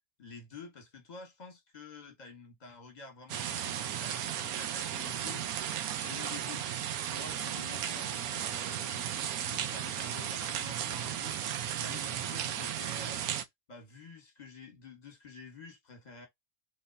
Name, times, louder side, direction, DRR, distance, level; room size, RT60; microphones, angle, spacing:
voice 1, 0.2-5.5 5.8-6.7 7.1-9.1 9.4-11.4 11.7-13.3 13.7-16.3, left 4 dB, 30° left, 1.3 m, -49 dB
sound 1, 3.3-13.4, right 10 dB, 90° right, 1.1 m, -35 dB
3.5 x 3.3 x 2.5 m
omnidirectional pair, 1.5 m